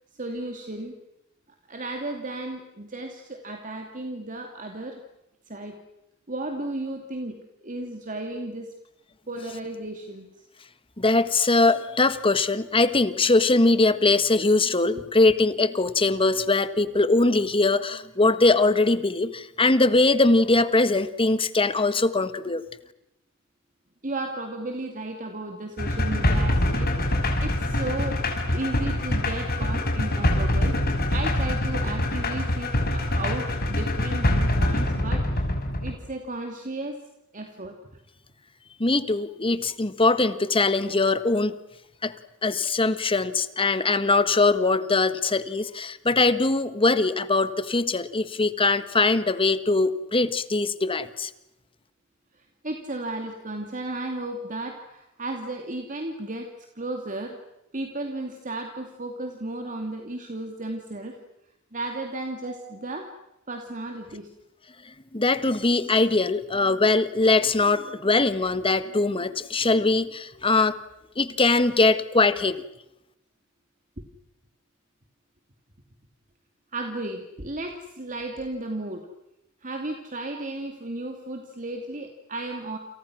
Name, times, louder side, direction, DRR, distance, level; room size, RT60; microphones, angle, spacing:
voice 1, 0.2-1.0 1.7-5.0 5.5-5.8 6.3-8.7 9.3-10.3 24.0-26.9 27.4-30.8 31.1-35.4 35.8-37.0 37.3-37.8 52.6-56.5 56.8-57.4 57.7-61.2 61.7-63.1 63.5-64.3 76.7-79.1 79.6-82.8, right 2 dB, 40° right, 4 dB, 2.6 m, -34 dB
voice 2, 11.0-22.6 38.8-41.5 42.0-42.1 42.4-51.3 65.1-70.7 71.2-72.6, left 3 dB, 25° left, 12 dB, 1.4 m, -21 dB
sound 1, 25.8-35.9, left 1 dB, 45° left, 5.8 m, -24 dB
30.0 x 28.0 x 6.2 m, 0.88 s
head